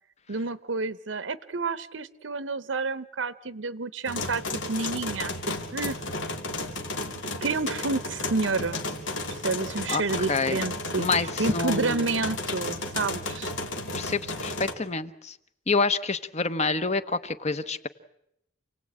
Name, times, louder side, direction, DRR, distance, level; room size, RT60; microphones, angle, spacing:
voice 1, 0.3-4.4 4.7-6.0 7.4-8.8 9.4-13.5, right 3 dB, 80° right, 15 dB, 0.9 m, -29 dB
sound 1, 4.1-14.7, left 2 dB, 80° left, 2.7 m, -33 dB
voice 2, 9.9-10.6 11.0-11.3 11.5-12.0 13.9-15.4 15.7-17.9, left 4 dB, 35° left, 12 dB, 1.0 m, -27 dB
28.5 x 18.0 x 8.8 m, 0.82 s
head